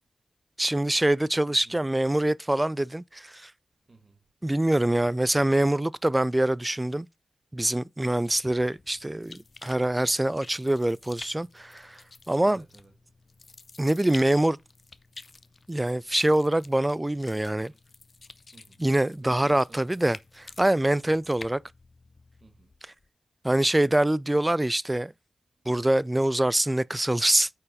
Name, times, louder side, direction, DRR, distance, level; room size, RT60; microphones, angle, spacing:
voice 1, 0.6-3.5 4.4-7.1 7.5-12.0 12.3-12.6 13.8-14.6 15.7-17.7 18.8-21.6 23.4-25.1 25.7-27.5, right 1 dB, 15° right, 0.3 m, -24 dB
voice 2, 1.5-1.8 3.9-4.2 8.0-8.3 11.9-12.0 12.4-13.1 17.7-17.8 18.5-18.8 19.2-20.0 20.9-21.2 22.4-22.7 26.4-26.6, right 3 dB, 45° right, 1.4 m, -54 dB
sound 1, 8.2-23.1, left 3 dB, 50° left, 0.6 m, -50 dB
8.7 x 4.6 x 4.1 m
cardioid pair, 70°, 0 cm